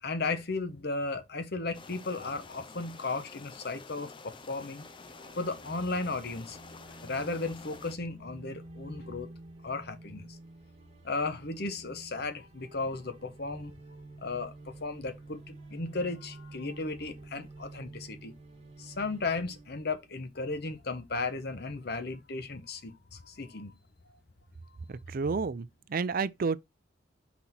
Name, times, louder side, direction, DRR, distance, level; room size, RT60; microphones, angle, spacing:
voice 1, 0.0-4.9 5.3-6.6 7.0-9.3 9.6-10.4 11.0-13.7 14.2-18.3 18.8-23.7 24.6-24.8, left 3 dB, 55° left, 1.1 m, -35 dB
sound 1, 1.7-8.0, left 4 dB, 25° left, 0.6 m, -49 dB
sound 2, 4.8-20.9, right 2 dB, 30° right, 1.7 m, -50 dB
voice 2, 24.9-26.6, right 4 dB, 50° right, 0.4 m, -31 dB
5.9 x 4.2 x 4.2 m
head